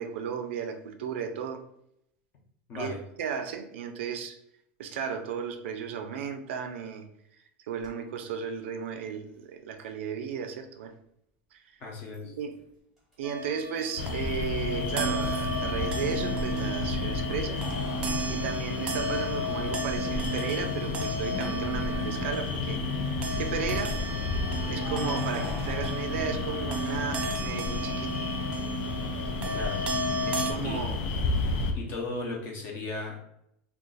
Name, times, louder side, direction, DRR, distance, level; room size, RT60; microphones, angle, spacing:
voice 1, 0.0-1.6 2.7-2.9 3.2-4.4 4.8-7.1 7.7-10.9 11.5-11.6 12.3-12.6 13.2-17.7 18.3-24.0 24.7-28.2 30.3-31.0, right 7 dB, 90° right, 7 dB, 0.5 m, -34 dB
voice 2, 2.7-3.0 11.8-12.3 29.5-29.8 30.6-30.8 31.7-33.2, left 3 dB, 30° left, -1 dB, 0.8 m, -36 dB
Keys jangling, 7.8-7.9 9.8-9.9 12.1-12.7 13.0-16.2 17.4-19.5 20.0-20.1 21.9-22.5 24.4-27.4, equal, ahead, 1.1 m, -44 dB
sound 1, 13.2-30.5, right 1 dB, 20° right, 0.4 m, -34 dB
sound 2, 14.0-31.7, left 4 dB, 60° left, 0.5 m, -32 dB
2.5 x 2.4 x 3.8 m, 0.76 s
supercardioid pair, 170°, 6 cm